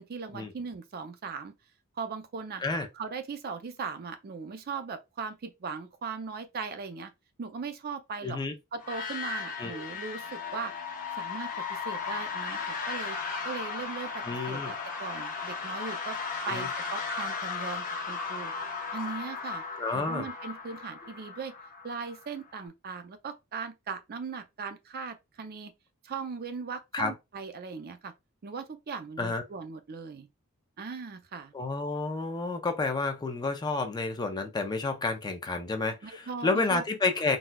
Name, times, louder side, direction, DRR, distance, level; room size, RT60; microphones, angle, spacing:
voice 1, 0.0-1.5 2.0-2.6 2.9-7.1 7.4-8.4 8.7-10.7 11.2-13.2 13.4-16.2 16.5-18.5 18.9-19.6 19.9-21.5 21.8-25.7 26.0-28.1 28.4-30.3 30.8-31.5 36.0-36.8, right 5 dB, 45° right, 0.4 m, -38 dB
voice 2, 8.2-8.5 9.6-9.8 14.3-14.7 16.5-16.7 19.8-20.3 26.9-27.1 29.2-29.4 31.5-37.4, left 3 dB, 20° left, 0.4 m, -30 dB
sound 1, 8.8-22.5, left 5 dB, 40° left, 0.9 m, -36 dB
4.0 x 2.2 x 2.2 m
head